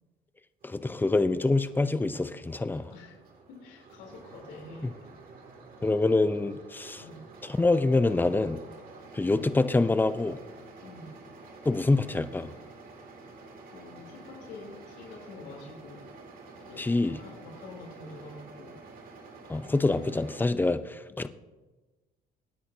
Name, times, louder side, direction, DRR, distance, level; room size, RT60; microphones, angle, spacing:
voice 1, 0.6-2.9 5.8-7.0 7.6-8.6 9.1-10.4 11.6-12.5 16.8-17.2 19.5-21.3, left 2 dB, 10° left, 12 dB, 0.6 m, -25 dB
sound 1, 0.6-20.5, right 3 dB, 55° right, 2.7 m, -49 dB
voice 2, 3.5-4.9 7.0-7.3 10.8-11.1 13.7-16.1 16.5-18.8 21.1-21.3, left 2 dB, 85° left, -1 dB, 3.6 m, -47 dB
24.5 x 10.0 x 2.8 m, 1.2 s
cardioid pair, 110°, 17 cm